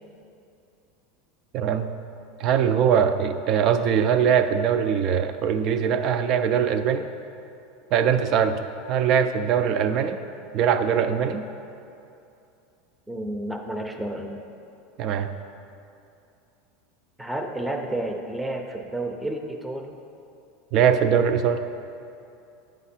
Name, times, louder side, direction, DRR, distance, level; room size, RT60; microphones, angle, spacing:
voice 1, 1.5-1.9 2.4-7.0 7.9-8.6 8.9-10.2 10.5-11.4 15.0-15.3 20.7-21.6, right 8 dB, 50° right, 9 dB, 0.4 m, -21 dB
voice 2, 13.1-14.4 17.2-20.0, right 1 dB, 5° right, 3 dB, 0.6 m, -31 dB
7.9 x 5.0 x 4.3 m, 2.7 s
supercardioid pair, 120°, 0 cm